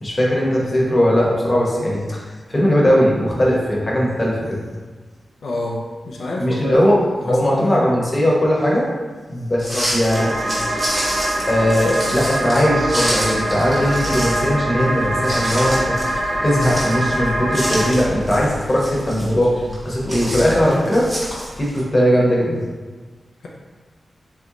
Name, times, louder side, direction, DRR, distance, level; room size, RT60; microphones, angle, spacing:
voice 1, 0.0-4.6 6.4-8.9 9.3-10.3 11.5-16.0 16.4-19.6 19.8-21.1 21.6-22.6, equal, 25° left, -4 dB, 1.0 m, -19 dB
voice 2, 5.4-6.8 7.3-7.9 9.7-9.9, left 1 dB, 85° left, -3 dB, 0.5 m, -27 dB
sound 1, 9.6-21.8, equal, 25° right, 1.3 m, -29 dB
sound 2, 10.1-17.9, right 1 dB, 65° right, 0.9 m, -23 dB
3.2 x 3.1 x 3.7 m, 1.4 s
wide cardioid pair, 95°, 0 cm